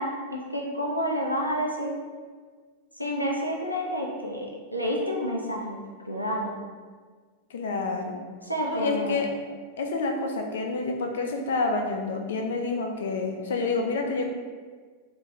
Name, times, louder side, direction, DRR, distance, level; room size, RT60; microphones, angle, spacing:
voice 1, 0.0-2.0 3.0-5.8 6.0-6.5 8.5-9.2, equal, 90° right, -1 dB, 0.4 m, -29 dB
voice 2, 7.5-8.2 8.6-9.3 9.8-14.2, left 3 dB, 60° left, 3 dB, 0.3 m, -28 dB
2.2 x 2.2 x 2.8 m, 1.5 s
figure-of-eight pair, 90°, 0 cm